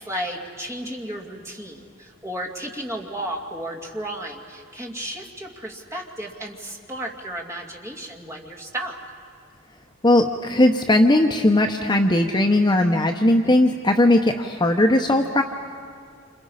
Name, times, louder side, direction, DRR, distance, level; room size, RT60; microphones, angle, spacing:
voice 1, 0.0-9.0, right 1 dB, 15° right, -1 dB, 2.5 m, -33 dB
voice 2, 10.0-15.4, left 1 dB, 20° left, 4 dB, 0.8 m, -18 dB
28.5 x 27.5 x 5.7 m, 2.3 s
head